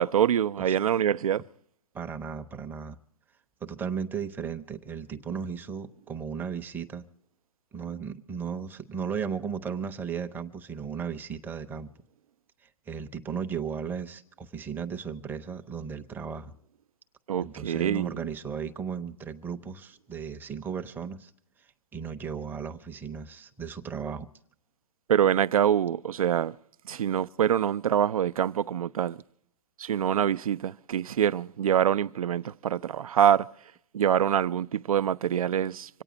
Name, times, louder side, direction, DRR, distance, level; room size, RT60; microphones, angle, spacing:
voice 1, 0.0-1.4 17.3-18.2 25.1-26.6 26.9-29.2 29.8-33.5 33.9-36.0, right 9 dB, 80° right, 0.5 m, -25 dB
voice 2, 1.9-3.0 3.6-7.0 7.7-11.9 12.9-16.5 17.4-21.3 21.9-24.3, right 6 dB, 10° right, 0.7 m, -35 dB
26.0 x 8.9 x 5.1 m
hypercardioid pair, 135°, 18 cm